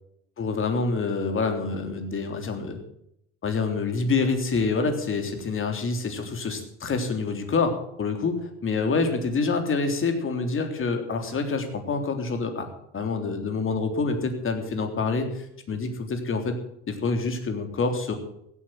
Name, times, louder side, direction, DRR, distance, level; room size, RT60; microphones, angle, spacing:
voice 1, 0.4-2.8 3.4-12.7 12.9-16.5 16.9-18.1, left 4 dB, 35° left, 6 dB, 3.5 m, -27 dB
16.0 x 10.0 x 7.6 m, 0.76 s
hypercardioid pair, 75°, 36 cm